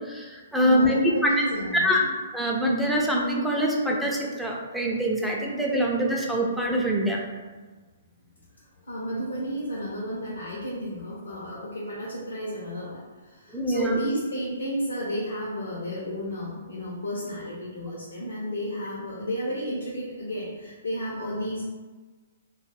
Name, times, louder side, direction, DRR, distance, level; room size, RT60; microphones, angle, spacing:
voice 1, 0.0-1.0 1.7-2.0 2.3-7.2 13.5-14.0, equal, ahead, -3 dB, 0.4 m, -24 dB
voice 2, 0.6-2.1 8.9-21.6, equal, 80° left, -7 dB, 0.6 m, -32 dB
2.3 x 2.0 x 3.2 m, 1.3 s
hypercardioid pair, 130°, 0 cm